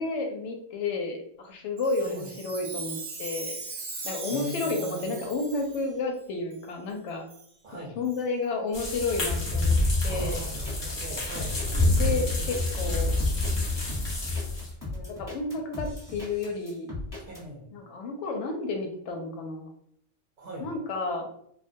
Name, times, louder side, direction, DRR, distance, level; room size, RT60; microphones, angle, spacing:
voice 1, 0.0-3.6 4.0-7.2 8.0-9.8 10.0-10.4 11.9-13.2 14.9-16.9 17.7-19.7 20.6-21.3, left 3 dB, 70° left, 3 dB, 0.8 m, -31 dB
Chime, 1.8-5.9 6.5-6.6 7.3-7.5 8.0-8.2 8.9-9.0 9.6-9.7 10.5-10.6, right 4 dB, 85° right, 1.0 m, -39 dB
voice 2, 2.0-2.3 4.3-5.1 7.6-8.0 10.0-11.6 17.3-17.7 20.4-20.7, right 1 dB, 45° right, -6 dB, 0.6 m, -40 dB
sound 1, 8.7-14.7, left 2 dB, 45° left, 0.3 m, -27 dB
sound 2, 10.2-17.4, left 2 dB, 20° left, 0.9 m, -38 dB
2.3 x 2.2 x 2.6 m, 0.70 s
omnidirectional pair, 1.3 m